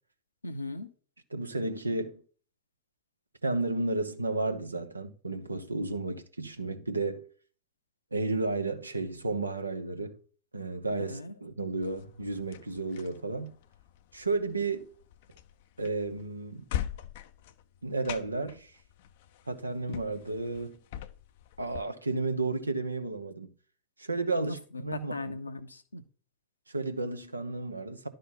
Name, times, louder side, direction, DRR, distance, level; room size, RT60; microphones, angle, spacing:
voice 1, 0.4-0.9 11.0-11.3 24.5-26.0, left 2 dB, 80° left, 0.9 m, -38 dB
voice 2, 1.3-2.2 3.4-7.3 8.1-10.2 10.5-13.5 14.1-14.9 15.8-16.6 17.8-18.7 19.5-20.8 21.6-23.5 24.0-25.2 26.7-28.1, right 3 dB, 80° right, 0.9 m, -32 dB
sound 1, 11.8-21.8, left 11 dB, 55° left, 0.6 m, -42 dB
11.5 x 3.9 x 5.8 m
figure-of-eight pair, 90°, 0 cm